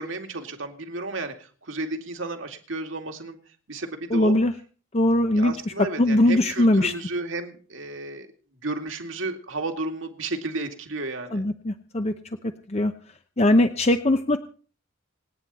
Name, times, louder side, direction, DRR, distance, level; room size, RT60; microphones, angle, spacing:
voice 1, 0.0-3.4 3.7-4.4 5.3-8.3 8.6-11.5, right 2 dB, 70° right, 4 dB, 2.4 m, -32 dB
voice 2, 4.1-4.5 4.9-5.5 6.0-6.9 11.3-12.1 12.7-12.9 13.4-14.4, left 1 dB, 35° left, 7 dB, 0.8 m, -20 dB
27.0 x 9.5 x 4.2 m, 0.41 s
head